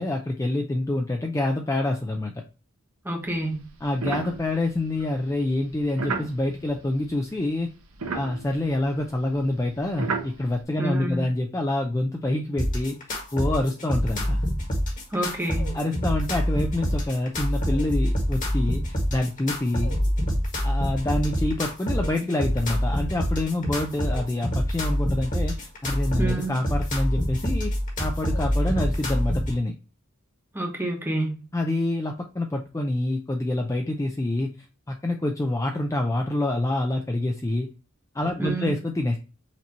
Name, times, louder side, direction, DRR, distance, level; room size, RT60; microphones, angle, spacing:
voice 1, 0.0-2.4 3.8-7.7 8.1-14.4 15.7-20.0 20.6-27.7 28.0-29.7 31.5-34.5 34.9-37.7 38.1-39.2, left 1 dB, 15° left, 0.4 m, -27 dB
voice 2, 3.0-3.7 10.8-11.2 15.1-15.8 26.2-26.5 30.5-31.4 38.4-38.8, right 1 dB, 10° right, 1.0 m, -28 dB
sound 1, 3.2-7.5 7.7-10.6, right 4 dB, 80° right, 0.9 m, -35 dB
sound 2, 12.6-29.6, equal, 35° left, 1.6 m, -26 dB
5.9 x 2.9 x 2.8 m
head